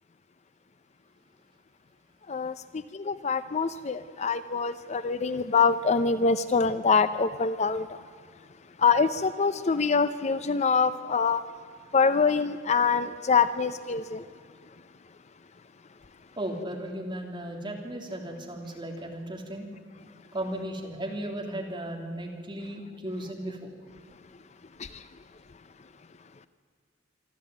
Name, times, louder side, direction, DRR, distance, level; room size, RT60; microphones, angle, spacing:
voice 1, 2.3-8.0 8.8-11.4 11.9-14.2 24.8-25.1, left 5 dB, 35° left, 0.6 m, -25 dB
voice 2, 16.4-19.7 20.3-23.7, right 1 dB, 25° right, 3.2 m, -35 dB
25.5 x 12.5 x 9.2 m
head